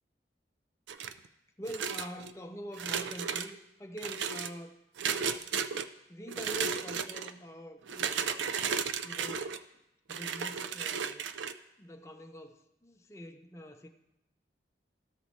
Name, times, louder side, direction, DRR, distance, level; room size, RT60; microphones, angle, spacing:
sound 1, 0.9-1.3 1.7-2.3 2.7-3.5 4.0-4.5 5.0-5.9 6.3-7.3 7.9-9.6 10.1-11.5, right 7 dB, 90° right, 0.4 m, -34 dB
voice 1, 1.6-5.5 6.1-8.5 9.0-9.6 10.1-11.3 11.8-13.9, equal, 15° left, 3 dB, 0.5 m, -45 dB
13.0 x 4.8 x 4.1 m, 0.87 s
head